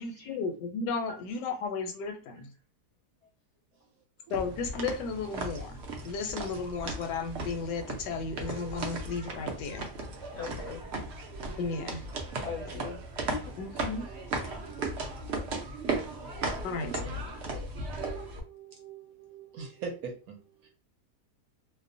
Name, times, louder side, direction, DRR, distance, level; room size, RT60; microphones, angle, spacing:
voice 1, 0.0-2.5 4.3-9.9 11.6-12.1 13.6-14.0 16.6-17.4, left 4 dB, 85° left, 1.2 m, -34 dB
sound 1, 4.3-18.4, right 2 dB, 85° right, 0.5 m, -36 dB
voice 2, 10.3-10.8 12.4-13.0 13.3-13.6, left 5 dB, 65° left, 0.7 m, -40 dB
voice 3, 17.9-20.7, right 5 dB, 65° right, 1.0 m, -44 dB
2.8 x 2.0 x 2.5 m
omnidirectional pair, 1.8 m